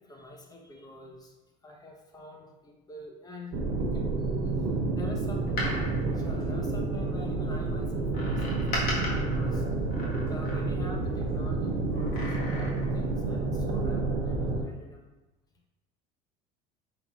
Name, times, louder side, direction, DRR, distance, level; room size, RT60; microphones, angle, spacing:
voice 1, 0.0-1.3 1.6-4.1 4.4-9.7 10.3-15.1, left 2 dB, 20° left, 1 dB, 1.0 m, -46 dB
sound 1, 3.5-14.6, right 3 dB, 55° right, 0.9 m, -29 dB
Door, 5.4-7.2 8.1-11.0 11.9-13.1 13.4-13.5, left 1 dB, 50° left, 1.5 m, -37 dB
5.3 x 4.0 x 2.4 m, 1.1 s
supercardioid pair, 95°, 19 cm